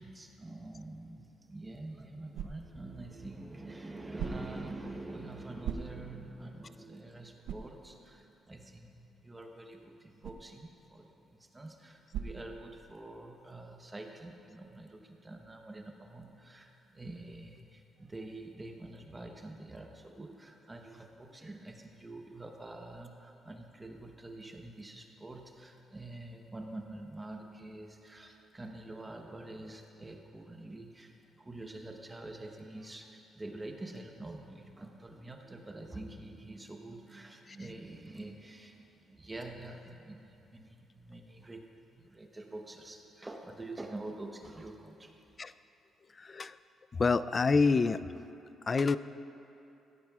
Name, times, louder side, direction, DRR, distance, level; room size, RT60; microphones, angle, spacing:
voice 1, 0.0-41.7 41.9-45.2, right 2 dB, 20° right, 3 dB, 1.0 m, -46 dB
sound 1, 1.5-13.2, right 7 dB, 85° right, 0.5 m, -46 dB
voice 2, 46.2-46.6 46.9-48.0 48.7-49.0, left 4 dB, 35° left, 14 dB, 0.3 m, -27 dB
16.5 x 13.5 x 2.4 m, 2.8 s
cardioid pair, 90°, 0 cm